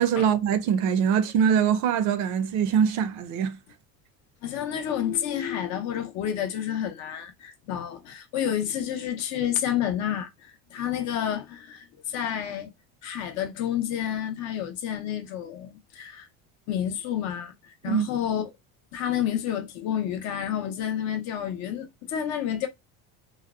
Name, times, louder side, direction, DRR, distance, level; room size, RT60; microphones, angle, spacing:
voice 1, 0.0-3.6 17.9-18.0, right 8 dB, 55° right, 0.5 m, -23 dB
voice 2, 4.4-12.7 13.0-16.3 16.7-18.5 18.9-22.7, left 10 dB, 50° left, 0.6 m, -30 dB
2.7 x 2.0 x 2.4 m
cardioid pair, 170°, 35 cm